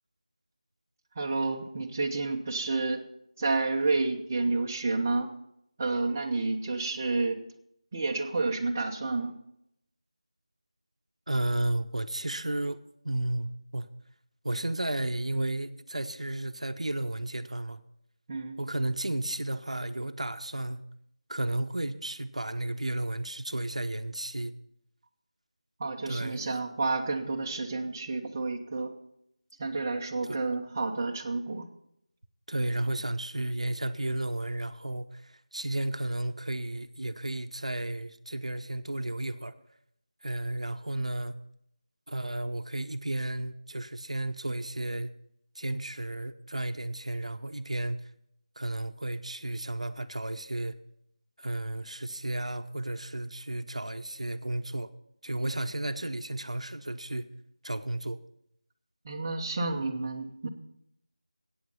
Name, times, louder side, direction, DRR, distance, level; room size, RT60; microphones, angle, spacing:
voice 1, 1.1-3.1 3.4-5.3 5.8-7.4 7.9-9.3 18.3-18.6 25.8-28.9 29.6-31.7 59.0-60.5, right 3 dB, 20° right, 0 dB, 0.9 m, -30 dB
voice 2, 11.3-13.9 14.4-17.8 18.6-20.8 21.3-24.5 26.1-26.5 30.2-30.4 32.5-39.5 40.2-41.4 42.1-45.1 45.6-48.0 48.6-50.8 51.4-54.9 55.2-57.3 57.6-58.2, right 1 dB, 75° right, 10 dB, 0.8 m, -33 dB
14.5 x 8.7 x 5.6 m, 0.76 s
figure-of-eight pair, 165°, 3 cm